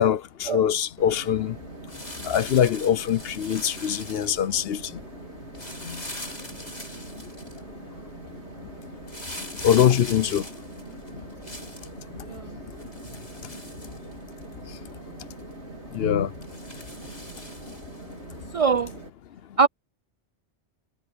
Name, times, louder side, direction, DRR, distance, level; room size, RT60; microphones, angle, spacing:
voice 1, 0.0-1.6 2.2-5.0 5.8-6.0 6.5-6.6 7.1-7.8 8.3-8.4 8.8-9.0 9.4-11.3 11.7-12.9 13.4-13.7 14.5-15.3 15.9-16.6 17.3-17.8 18.0-18.4 19.5-19.6, left 9 dB, 65° left, 0.9 m, -26 dB
sound 1, 1.0-19.1, right 3 dB, 85° right, 3.3 m, -43 dB
sound 2, 1.9-4.5 5.5-7.6 9.1-11.9 12.8-14.4 14.9-15.0 15.4-15.5 16.4-18.0 18.9-19.0, left 1 dB, 40° left, 6.8 m, -41 dB
voice 2, 18.5-18.9 19.6-19.7, right 5 dB, 60° right, 0.3 m, -22 dB
omnidirectional pair, 1.1 m